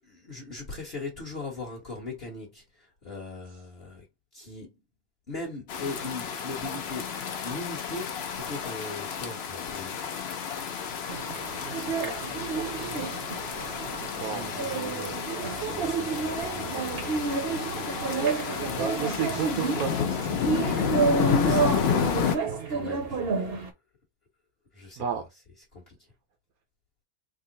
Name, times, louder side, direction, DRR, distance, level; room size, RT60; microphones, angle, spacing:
voice 1, 0.0-4.1 4.3-4.8 5.3-7.1 7.4-10.0 14.2-17.9 21.0-22.1 22.7-23.7 24.7-25.0 25.7-26.1, left 3 dB, 40° left, 1.2 m, -40 dB
sound 1, 5.7-22.4, left 7 dB, 60° left, 0.6 m, -31 dB
sound 2, 11.1-23.7, right 4 dB, 50° right, 0.8 m, -30 dB
voice 2, 11.6-15.2 16.6-17.0 18.7-21.0 25.0-25.2, right 8 dB, 75° right, 1.1 m, -36 dB
3.7 x 2.1 x 3.8 m
omnidirectional pair, 1.7 m